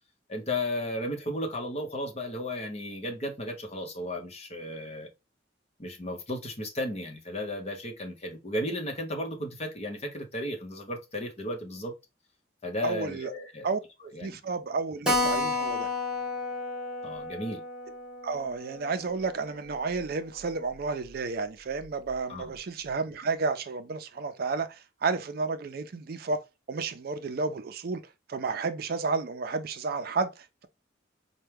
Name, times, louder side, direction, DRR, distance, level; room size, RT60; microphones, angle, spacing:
voice 1, 0.3-5.1 5.8-11.9 12.6-13.7 14.1-14.4 17.0-17.6 22.3-22.5, left 1 dB, 35° left, 0.9 m, -34 dB
voice 2, 12.8-13.3 13.6-15.9 18.2-24.7 25.0-26.4 26.7-28.0 28.3-30.7, right 4 dB, 55° right, 0.4 m, -31 dB
Keyboard (musical), 15.1-20.1 20.4-20.5 20.8-20.9 21.1-21.2 21.8-22.1, left 2 dB, 5° right, 0.9 m, -32 dB
4.4 x 2.2 x 3.4 m
head